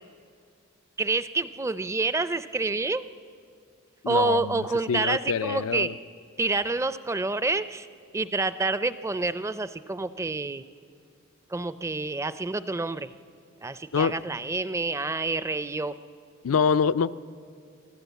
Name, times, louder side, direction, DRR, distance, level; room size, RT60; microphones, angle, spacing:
voice 1, 1.0-3.1 4.1-5.9 6.4-7.9 8.1-10.6 11.5-13.1 13.6-16.0, right 3 dB, 15° right, 14 dB, 0.4 m, -28 dB
voice 2, 4.0-5.9 13.9-14.2 16.4-17.2, left 6 dB, 85° left, 14 dB, 0.5 m, -25 dB
24.0 x 15.5 x 8.2 m, 2.3 s
head